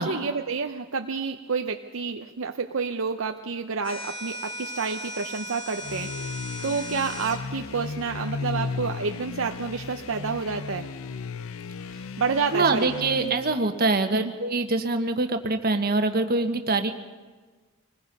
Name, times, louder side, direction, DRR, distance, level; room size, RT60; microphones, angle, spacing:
voice 1, 0.0-6.1 6.6-10.9 12.2-12.9 13.2-13.3 14.1-14.3, right 5 dB, 70° right, 5 dB, 0.7 m, -29 dB
sound 1, 3.8-7.4, equal, 25° left, 2.0 m, -37 dB
sound 2, 5.8-13.6, left 4 dB, 75° left, 0.6 m, -35 dB
voice 2, 12.5-16.9, right 3 dB, 50° right, 6 dB, 1.4 m, -24 dB
25.0 x 20.5 x 5.4 m, 1.4 s
head